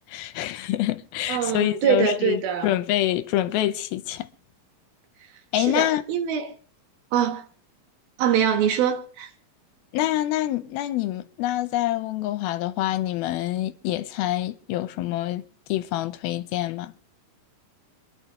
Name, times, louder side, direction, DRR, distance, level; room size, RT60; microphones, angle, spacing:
voice 1, 0.1-4.3 5.5-6.0 9.9-15.4 15.7-16.9, left 14 dB, 85° left, 2.7 m, -26 dB
voice 2, 1.3-2.7 5.5-6.6 7.1-7.5 8.2-9.3, right 8 dB, 80° right, 3.4 m, -24 dB
27.5 x 11.0 x 3.2 m
omnidirectional pair, 4.3 m